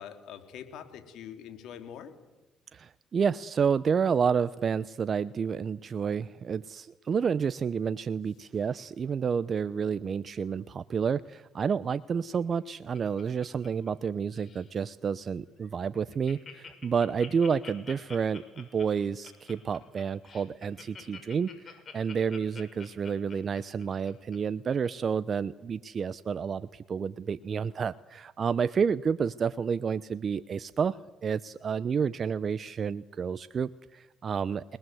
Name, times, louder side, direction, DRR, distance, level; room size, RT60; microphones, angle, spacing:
voice 1, 0.0-2.1, left 9 dB, 70° left, 7 dB, 3.6 m, -44 dB
voice 2, 2.7-34.8, right 6 dB, 50° right, 15 dB, 0.7 m, -30 dB
Laughter, 12.3-14.1 14.4-14.7 15.2-15.3 15.6-15.7 15.9-24.4 24.8-24.9, left 5 dB, 45° left, 6.4 m, -47 dB
29.5 x 20.0 x 7.9 m, 1.1 s
supercardioid pair, 65°, 0 cm